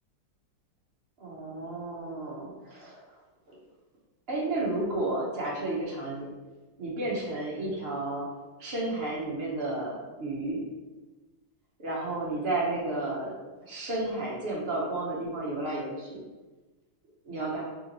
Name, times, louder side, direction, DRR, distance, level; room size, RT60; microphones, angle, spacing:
voice 1, 1.2-3.2 3.5-3.6 4.3-6.3 6.8-8.3 8.6-10.6 11.8-16.2 17.2-17.6, right 2 dB, 50° right, -4 dB, 0.7 m, -32 dB
3.4 x 2.9 x 3.9 m, 1.2 s
omnidirectional pair, 2.2 m